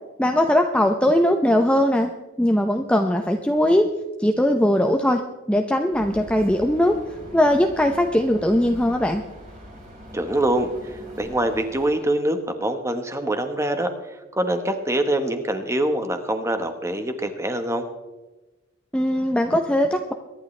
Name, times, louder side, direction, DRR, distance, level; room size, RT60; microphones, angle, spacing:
voice 1, 0.2-2.1 2.4-3.9 4.2-5.2 5.5-7.0 7.3-9.2 18.9-20.1, left 1 dB, 5° left, 4 dB, 0.6 m, -20 dB
sound 1, 5.9-11.9, equal, 35° right, 4.4 m, -42 dB
voice 2, 10.1-13.9 14.3-17.8, right 1 dB, 15° right, 7 dB, 1.2 m, -24 dB
23.5 x 11.0 x 3.3 m, 1.1 s
head